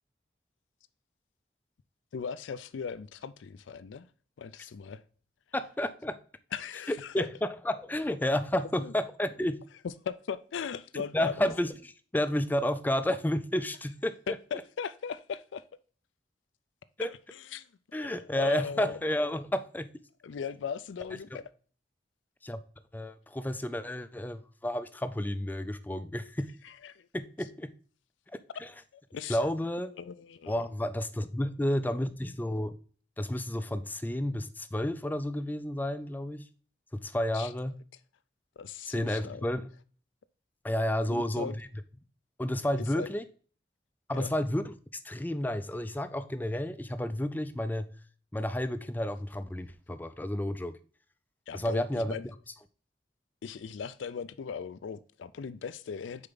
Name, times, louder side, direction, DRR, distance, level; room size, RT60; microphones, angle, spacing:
voice 1, 2.1-4.1 4.4-5.0 6.5-7.3 8.8-8.9 9.8-11.5 14.3-15.6 17.0-19.0 20.2-21.4 26.6-27.1 28.9-29.4 30.0-30.5 37.3-37.5 38.6-39.5 41.1-41.5 42.9-43.1 44.1-44.3 51.5-52.2 53.4-56.3, left 6 dB, 85° left, 0.4 m, -38 dB
voice 2, 5.5-6.2 7.1-9.6 11.1-14.1 17.0-17.1 17.9-19.9 21.3-21.4 22.4-22.6 22.9-26.5 27.1-27.7 28.6-28.7 29.3-29.9 30.5-32.8 33.2-36.4 36.9-37.7 38.9-39.7 40.6-41.7 42.4-43.2 44.1-44.7 45.0-47.9 48.3-50.8 51.5-52.2, left 1 dB, 10° left, 0.3 m, -31 dB
6.6 x 4.6 x 3.8 m
head